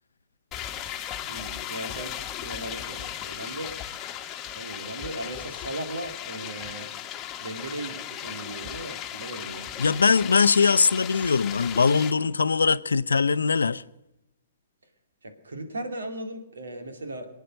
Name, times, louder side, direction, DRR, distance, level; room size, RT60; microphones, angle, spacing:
sound 1, 0.5-12.1, left 11 dB, 25° left, 1.3 m, -37 dB
voice 1, 1.3-3.7 4.5-6.9 7.4-9.7 10.2-10.3 15.2-17.3, right 1 dB, 80° right, 2.5 m, -37 dB
voice 2, 9.8-13.8, left 5 dB, 85° left, 0.5 m, -21 dB
24.0 x 9.2 x 6.4 m
hypercardioid pair, 120°, 0 cm